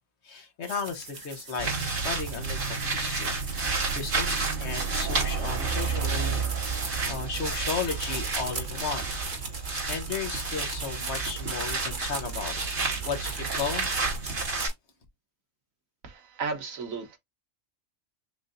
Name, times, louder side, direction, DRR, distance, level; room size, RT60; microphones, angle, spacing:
voice 1, 0.2-3.3 3.6-6.8 7.1-9.1 9.9-14.3, left 5 dB, 55° left, 1.2 m, -35 dB
sound 1, 0.6-14.7, right 4 dB, 40° right, 1.3 m, -39 dB
sound 2, 1.6-14.7, right 4 dB, 60° right, 3.0 m, -30 dB
voice 2, 16.0-17.2, right 4 dB, 75° right, 1.5 m, -34 dB
6.5 x 2.7 x 2.5 m
omnidirectional pair, 1.4 m